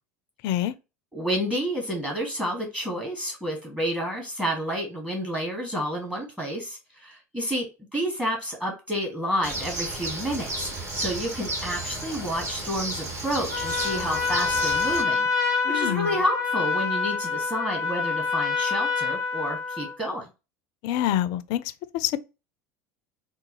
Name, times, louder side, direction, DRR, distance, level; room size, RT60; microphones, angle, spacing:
voice 1, 1.1-7.7 7.9-20.3, equal, 15° right, 1.3 m, -30 dB
Bird, 9.4-15.0, right 2 dB, 35° right, 1.3 m, -33 dB
Trumpet, 13.5-20.0, left 5 dB, 90° right, 1.2 m, -26 dB
voice 2, 15.7-16.1 20.8-21.6 21.9-22.2, left 12 dB, 55° left, 0.3 m, -26 dB
3.7 x 2.3 x 3.0 m
figure-of-eight pair, 75°, 8 cm